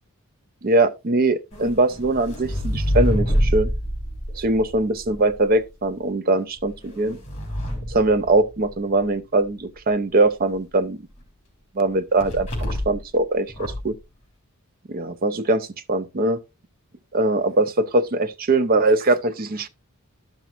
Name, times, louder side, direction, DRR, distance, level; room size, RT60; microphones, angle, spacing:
voice 1, 0.6-3.7 4.3-7.2 7.9-11.0 11.7-13.9 14.9-16.4 17.1-19.7, right 2 dB, 40° right, 0.6 m, -21 dB
sound 1, 1.5-5.6 6.6-8.9 12.2-13.1 13.5-14.0, equal, 30° left, 3.1 m, -26 dB
12.0 x 5.9 x 2.5 m
head